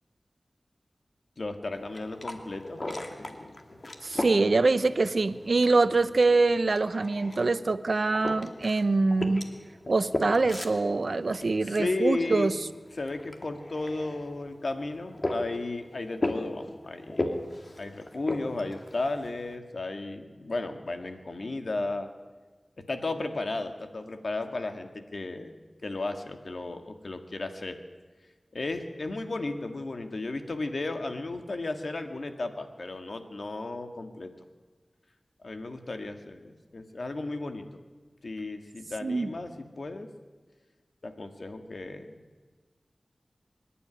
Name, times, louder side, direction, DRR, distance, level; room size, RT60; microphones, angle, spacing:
voice 1, 1.4-3.6 4.2-4.3 11.6-12.5 12.9-17.4 17.8-22.1 22.8-25.5 25.8-27.8 28.5-34.3 35.4-37.8 38.2-40.1 41.0-42.2, left 2 dB, 75° left, 6 dB, 2.0 m, -34 dB
sound 1, 1.7-19.6, left 1 dB, 50° left, 2.5 m, -38 dB
voice 2, 4.0-9.4 9.9-12.5 39.0-39.3, right 3 dB, 70° right, 13 dB, 0.9 m, -24 dB
25.0 x 11.5 x 9.9 m, 1.4 s
wide cardioid pair, 45°, 0 cm